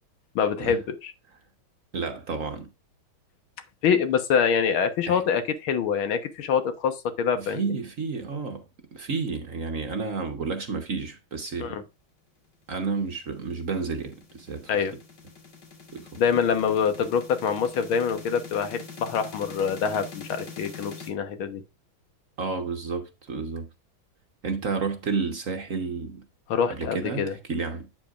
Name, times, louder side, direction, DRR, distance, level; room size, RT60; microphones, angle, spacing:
voice 1, 0.4-1.1 3.8-7.7 11.6-11.8 14.7-14.9 16.2-21.6 26.5-27.3, left 7 dB, 80° left, 2.0 m, -25 dB
voice 2, 1.9-2.7 5.1-5.2 7.3-8.6 8.9-11.8 12.7-14.8 15.9-16.2 22.4-23.7 24.4-26.2 26.7-27.9, right 4 dB, 45° right, 1.2 m, -31 dB
sound 1, 13.0-21.1, left 5 dB, 55° left, 2.7 m, -44 dB
9.1 x 7.8 x 2.4 m
omnidirectional pair, 2.2 m